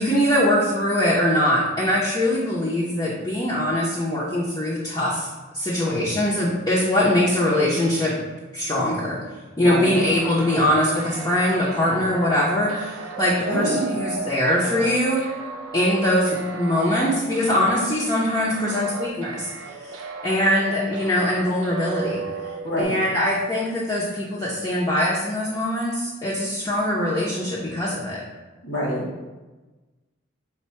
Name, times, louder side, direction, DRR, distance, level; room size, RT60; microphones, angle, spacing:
voice 1, 0.0-8.2 8.5-9.2 9.6-15.2 15.7-20.0 20.2-22.2 22.8-28.2, left 1 dB, 20° left, -7 dB, 0.6 m, -22 dB
voice 2, 9.6-10.0 13.4-13.8 22.6-23.0 28.6-29.1, equal, 80° left, -5 dB, 1.5 m, -26 dB
sound 1, 9.9-22.8, right 3 dB, 85° right, 0.4 m, -35 dB
4.4 x 2.2 x 4.2 m, 1.2 s
head